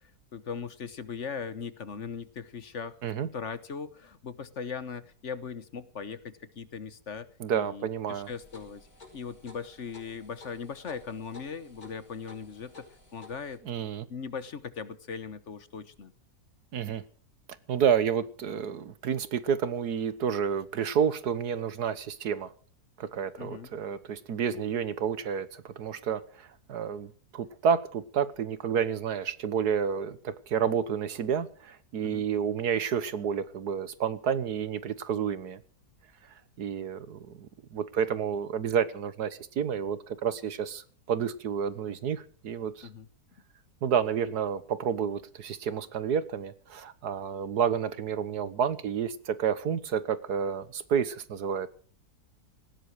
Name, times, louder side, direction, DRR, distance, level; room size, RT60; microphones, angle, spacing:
voice 1, 0.3-7.3 7.5-8.9 9.1-12.8 13.1-13.6 14.1-16.1 23.4-23.7 32.0-32.2 42.8-43.1, left 6 dB, 50° left, 14 dB, 1.3 m, -39 dB
voice 2, 7.4-8.3 13.7-14.1 16.7-17.0 17.7-22.5 23.0-35.6 36.6-42.9 43.8-51.7, right 7 dB, 80° right, 15 dB, 1.7 m, -30 dB
sound 1, 8.2-13.6, left 3 dB, 65° left, 6.1 m, -53 dB
18.5 x 16.0 x 4.7 m, 0.41 s
omnidirectional pair, 1.7 m